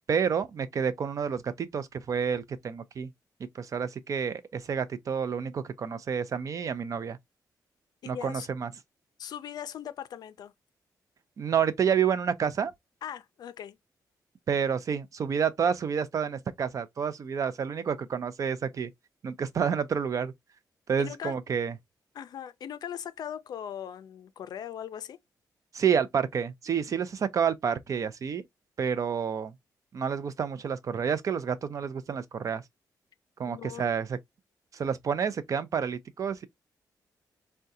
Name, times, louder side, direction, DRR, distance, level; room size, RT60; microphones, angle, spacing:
voice 1, 0.1-3.1 3.5-7.2 8.1-8.7 11.4-12.7 14.5-18.9 19.2-20.3 20.9-21.7 25.7-28.4 28.8-29.5 29.9-32.6 33.4-34.2 34.7-36.5, right 7 dB, 50° right, 0.4 m, -29 dB
voice 2, 8.0-8.5 9.2-10.5 13.0-13.8 21.0-21.4 22.1-25.2 33.5-33.9, left 9 dB, 70° left, 0.4 m, -39 dB
3.6 x 2.2 x 2.7 m
cardioid pair, 115°, 7 cm